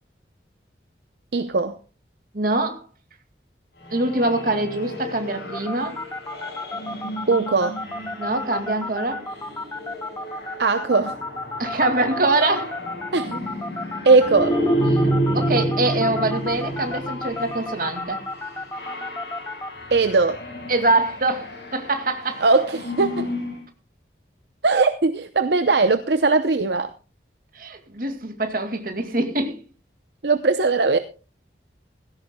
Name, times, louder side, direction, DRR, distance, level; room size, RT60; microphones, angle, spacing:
voice 1, 1.3-1.8 7.3-7.8 10.6-11.2 13.1-13.5 14.0-14.6 19.9-20.4 22.4-23.3 24.6-26.9 30.2-31.0, right 3 dB, 70° right, 0.7 m, -19 dB
voice 2, 2.3-2.9 3.9-6.0 8.2-9.3 11.6-12.8 15.0-18.2 20.7-22.4 27.5-29.6, right 2 dB, 50° right, 2.3 m, -24 dB
sound 1, 3.8-23.6, equal, 65° left, 7.5 m, -30 dB
sound 2, 5.5-19.7, left 2 dB, 15° left, 0.7 m, -32 dB
17.5 x 16.0 x 2.3 m
head